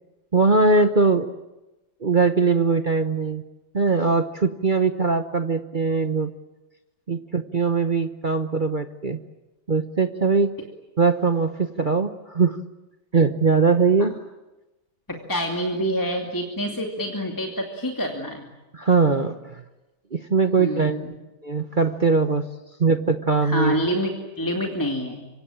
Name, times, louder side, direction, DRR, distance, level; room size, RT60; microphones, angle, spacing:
voice 1, 0.3-1.3 2.0-3.4 3.7-6.3 7.1-9.2 9.7-10.5 11.0-12.6 13.1-14.1 18.7-19.6 20.1-21.0 21.4-22.5 22.8-23.8, right 4 dB, 35° right, 8 dB, 0.8 m, -21 dB
voice 2, 15.1-18.5 20.6-21.1 23.4-25.3, equal, 10° left, 1 dB, 2.4 m, -27 dB
26.0 x 24.5 x 8.9 m, 1.0 s
omnidirectional pair, 2.2 m